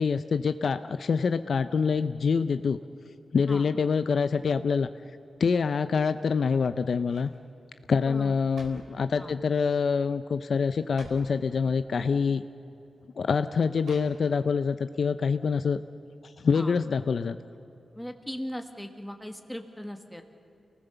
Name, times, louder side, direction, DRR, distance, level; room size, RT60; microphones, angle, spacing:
voice 1, 0.0-2.8 3.3-4.9 5.4-7.3 7.9-12.4 13.2-15.8 16.2-17.4, left 5 dB, 55° left, 11 dB, 0.5 m, -26 dB
sound 1, 6.2-6.6 7.0-7.4 8.2-9.0 9.8-10.1 10.3-10.4 10.8-11.4 12.3-12.4 13.8-14.5 14.9-15.0, right 3 dB, 70° right, 3.6 m, -51 dB
voice 2, 7.9-8.4 9.2-9.4 16.5-16.8 17.9-20.2, equal, 5° left, 5 dB, 1.5 m, -39 dB
29.0 x 18.5 x 6.9 m, 2.7 s
wide cardioid pair, 145°, 0 cm